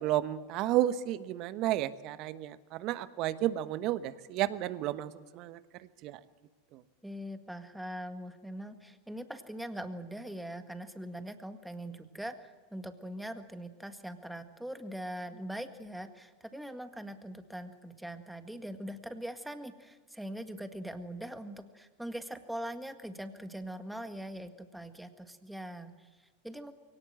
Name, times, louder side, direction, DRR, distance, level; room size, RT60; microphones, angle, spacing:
voice 1, 0.0-5.6 6.0-6.2 6.7-6.8, right 13 dB, 50° right, 14 dB, 1.1 m, -32 dB
voice 2, 7.0-26.7, right 1 dB, 5° right, 8 dB, 1.8 m, -42 dB
22.5 x 18.0 x 7.8 m, 1.4 s
hypercardioid pair, 90°, 0 cm